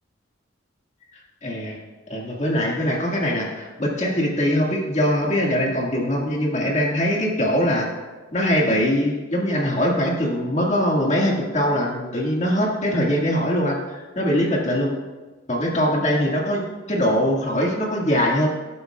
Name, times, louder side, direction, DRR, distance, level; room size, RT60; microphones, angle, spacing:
voice 1, 1.1-1.8 2.1-7.9 8.3-14.9 15.5-18.5, equal, 35° left, -2 dB, 1.9 m, -22 dB
17.5 x 8.3 x 2.4 m, 1.3 s
head